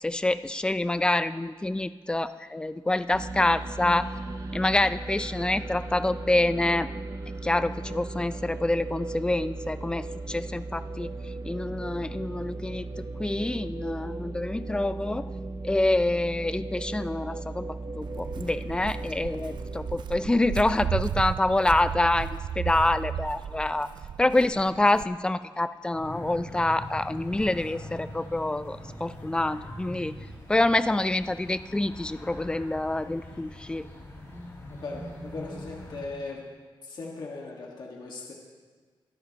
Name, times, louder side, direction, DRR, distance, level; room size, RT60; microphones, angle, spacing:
voice 1, 0.0-4.1 4.5-6.9 7.4-11.1 11.4-12.9 13.2-15.3 15.6-23.9 24.2-30.1 30.5-33.9, left 2 dB, 10° left, 13 dB, 0.4 m, -26 dB
sound 1, 3.1-20.0, right 2 dB, 40° right, 0.8 m, -37 dB
Walk footsteps, 18.0-25.0, right 9 dB, 65° right, 0.3 m, -34 dB
sound 2, 25.9-36.0, equal, 35° left, 4.6 m, -42 dB
voice 2, 34.7-36.4 36.8-38.3, left 3 dB, 55° left, -2 dB, 1.5 m, -38 dB
22.5 x 11.0 x 2.9 m, 1.5 s
wide cardioid pair, 140°, 9 cm